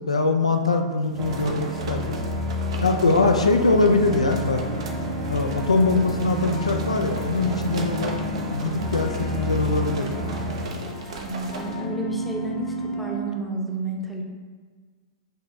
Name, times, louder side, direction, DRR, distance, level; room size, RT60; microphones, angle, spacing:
voice 1, 0.1-2.4 2.8-4.6 5.3-8.1 8.5-10.4, left 3 dB, 90° left, 4 dB, 0.4 m, -22 dB
sound 1, 1.0-11.9, right 3 dB, 65° right, 0.6 m, -39 dB
sound 2, 1.2-10.7, equal, 30° right, 0.8 m, -30 dB
sound 3, 4.1-13.2, equal, 35° left, 0.6 m, -35 dB
voice 2, 11.2-14.2, right 2 dB, ahead, -1 dB, 0.7 m, -31 dB
5.4 x 2.8 x 3.5 m, 1.5 s
figure-of-eight pair, 100°, 3 cm